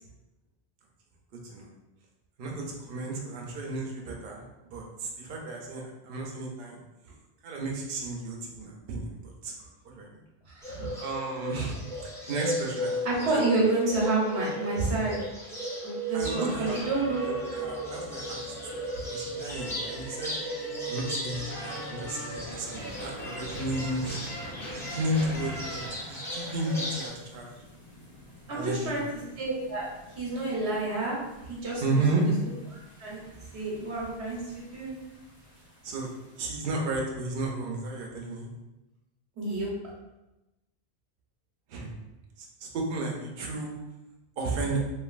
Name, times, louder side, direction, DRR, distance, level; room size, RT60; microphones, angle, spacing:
voice 1, 2.4-4.4 4.7-6.8 7.4-9.5 9.9-10.1 11.0-13.3 16.1-16.8 17.2-18.5 19.1-20.3 20.8-24.2 24.7-27.5 28.5-28.9 31.8-32.3 35.8-36.1 36.4-38.5 41.7-41.9 42.4-42.5 42.7-43.7 44.4-44.8, right 2 dB, 65° right, -1 dB, 0.8 m, -33 dB
voice 2, 10.5-11.0 13.0-15.2 15.8-17.2 28.5-29.0 29.4-29.9 30.2-31.2 31.5-32.2 33.0-33.2 33.5-35.0 39.4-39.7, right 3 dB, 90° right, -4 dB, 1.1 m, -29 dB
Bird, 10.6-27.1, equal, 5° left, 0.6 m, -36 dB
sound 1, 16.2-25.9, left 1 dB, 80° left, 1.3 m, -41 dB
sound 2, 22.8-36.5, equal, 50° left, 1.4 m, -48 dB
3.0 x 2.4 x 2.4 m, 0.98 s
omnidirectional pair, 1.1 m